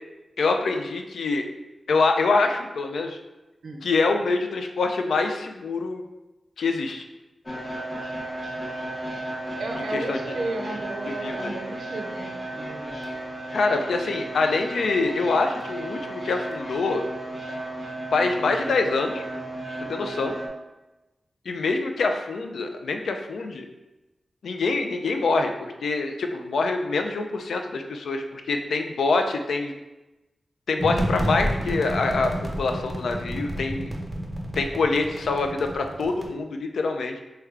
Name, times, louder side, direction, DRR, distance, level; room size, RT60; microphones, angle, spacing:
voice 1, 0.4-1.4 1.9-3.2 3.8-6.0 6.6-7.0 9.9-10.2 11.1-11.5 13.5-17.0 18.1-19.2 19.9-20.4 21.5-23.7 24.4-29.7 30.7-33.9 34.6-37.1, left 3 dB, 85° left, 5 dB, 0.3 m, -25 dB
sound 1, 7.5-20.5, right 1 dB, 45° left, 0.8 m, -34 dB
voice 2, 9.6-13.2, right 2 dB, 85° right, 1 dB, 0.5 m, -34 dB
sound 2, 30.8-36.3, equal, 5° right, 0.9 m, -30 dB
3.1 x 2.2 x 3.5 m, 1.0 s
cardioid pair, 45°, 0 cm